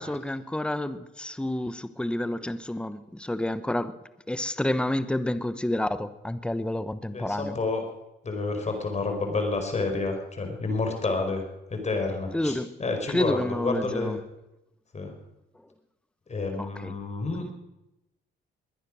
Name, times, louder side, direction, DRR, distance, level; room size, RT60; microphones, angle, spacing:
voice 1, 0.0-4.0 4.3-7.6 12.3-12.7 13.1-14.2 16.6-16.9, left 1 dB, 5° left, 1.0 m, -29 dB
voice 2, 7.1-7.9 8.2-11.4 11.7-14.2 14.9-15.2 16.3-17.5, left 3 dB, 35° left, 4.8 m, -29 dB
21.5 x 10.0 x 6.3 m
cardioid pair, 90°, 20 cm